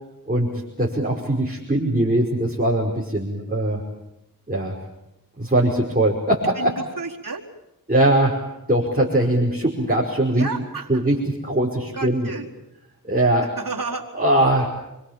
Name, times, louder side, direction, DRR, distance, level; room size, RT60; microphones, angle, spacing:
voice 1, 0.8-3.8 4.5-4.7 5.4-6.7 7.9-8.4 8.7-10.5 10.9-12.3 13.0-13.5 14.2-14.7, right 1 dB, 25° right, -4 dB, 5.4 m, -21 dB
voice 2, 6.6-7.4 10.3-10.9 11.9-12.5 13.6-14.0, right 4 dB, 60° right, -2 dB, 4.4 m, -31 dB
28.5 x 24.0 x 7.5 m, 0.91 s
wide cardioid pair, 45°, 37 cm